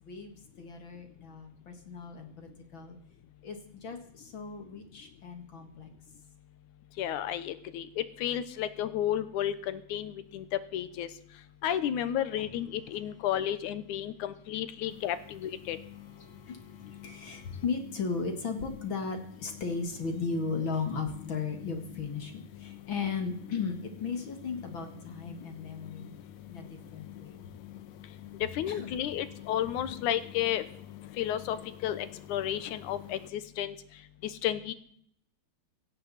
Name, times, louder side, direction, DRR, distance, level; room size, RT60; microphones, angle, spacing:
voice 1, 0.0-3.0 3.4-5.9 12.9-13.0 15.6-15.8 16.1-26.1 26.5-27.4 28.7-29.0 29.9-30.0, left 5 dB, 45° left, 6 dB, 2.3 m, -36 dB
voice 2, 7.0-11.1 11.6-15.8 28.5-30.6 31.2-31.6 31.8-33.8 34.2-34.7, left 11 dB, 90° left, 13 dB, 2.5 m, -32 dB
sound 1, 14.9-33.3, left 12 dB, 75° left, 2.2 m, -49 dB
17.0 x 16.0 x 4.2 m, 0.65 s
omnidirectional pair, 3.4 m